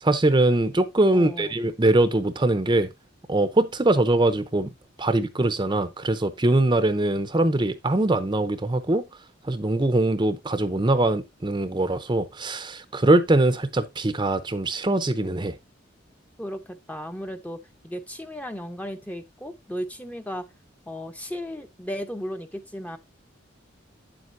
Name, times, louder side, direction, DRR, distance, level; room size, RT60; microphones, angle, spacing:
voice 1, 0.0-2.9 3.3-4.7 5.0-9.1 9.4-15.5, right 2 dB, 25° right, 0.6 m, -22 dB
voice 2, 1.1-1.6 16.4-20.5 20.9-23.0, equal, 10° left, 0.7 m, -35 dB
9.0 x 7.7 x 2.6 m
head